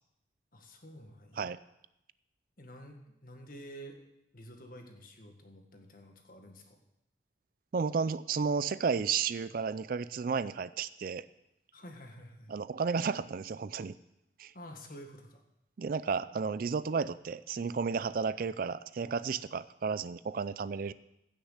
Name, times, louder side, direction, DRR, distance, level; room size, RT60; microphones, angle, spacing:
voice 1, 0.5-1.4 2.6-4.0 4.3-6.8 11.7-12.6 14.5-15.4, equal, 50° left, 3 dB, 1.7 m, -50 dB
voice 2, 7.7-11.3 12.5-13.9 14.4-14.5 15.8-20.9, right 5 dB, 50° right, 16 dB, 0.4 m, -32 dB
16.0 x 6.5 x 6.5 m, 0.85 s
head